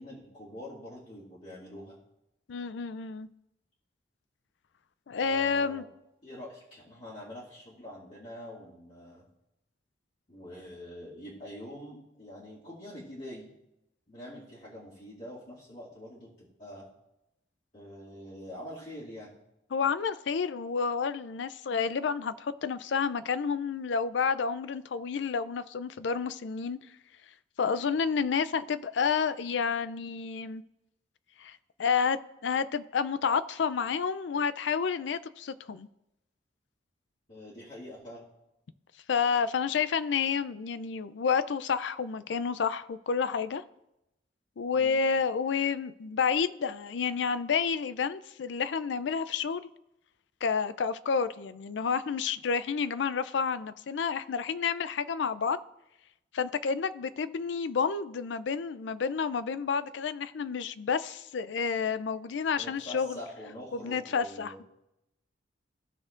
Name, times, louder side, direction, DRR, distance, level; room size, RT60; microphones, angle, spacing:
voice 1, 0.0-2.0 5.2-5.9 6.2-9.2 10.3-13.5 14.1-16.9 17.7-19.3 37.3-38.3 44.7-45.0 62.6-64.6, equal, 40° left, 2.4 m, -45 dB
voice 2, 2.5-3.3 5.1-5.8 19.7-26.8 27.6-30.6 31.4-35.9 39.1-43.6 44.6-49.7 50.4-55.6 56.3-63.2 63.7-64.6, left 6 dB, 80° left, 0.4 m, -30 dB
16.0 x 6.2 x 2.5 m
head